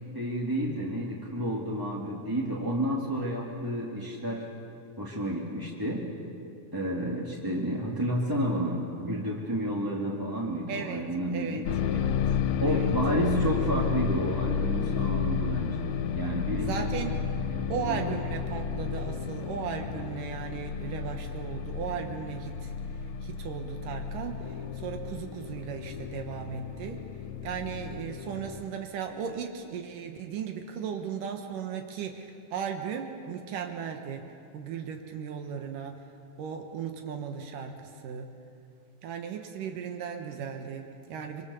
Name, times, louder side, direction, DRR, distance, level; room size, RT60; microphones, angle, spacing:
voice 1, 0.0-4.4 5.0-6.0 6.7-11.7 12.6-15.9 16.1-16.9 17.5-18.0, equal, 10° right, -4 dB, 1.5 m, -30 dB
voice 2, 10.7-11.1 11.3-11.6 11.9-12.2 12.7-12.9 16.6-17.2 17.7-22.7 23.2-27.0 27.4-36.0 36.4-38.3 39.0-41.5, right 7 dB, 80° right, 5 dB, 2.8 m, -36 dB
sound 1, 11.6-28.6, left 7 dB, 70° left, 1.9 m, -32 dB
25.5 x 24.0 x 7.0 m, 2.6 s
omnidirectional pair, 3.8 m